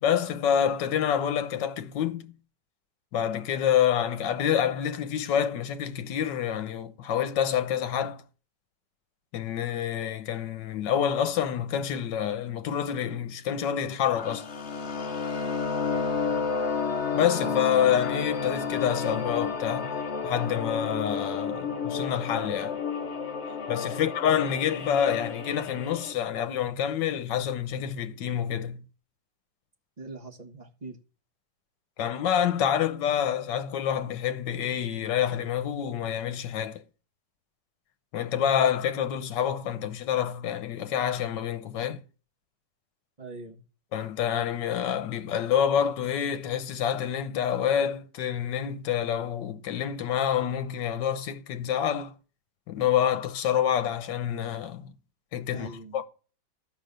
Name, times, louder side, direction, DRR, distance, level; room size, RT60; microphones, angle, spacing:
voice 1, 0.0-2.3 3.1-8.2 9.3-14.5 17.1-19.9 20.2-22.8 23.7-28.8 32.0-36.8 38.1-42.0 43.9-52.1 52.7-54.9 55.3-56.0, left 9 dB, 80° left, 1.5 m, -27 dB
sound 1, 14.2-26.1, left 5 dB, 45° left, 1.1 m, -31 dB
voice 2, 16.2-16.5 23.9-24.1 30.0-31.0 43.2-43.6 55.5-56.0, right 3 dB, 25° right, 1.3 m, -43 dB
12.5 x 5.2 x 6.7 m
omnidirectional pair, 1.9 m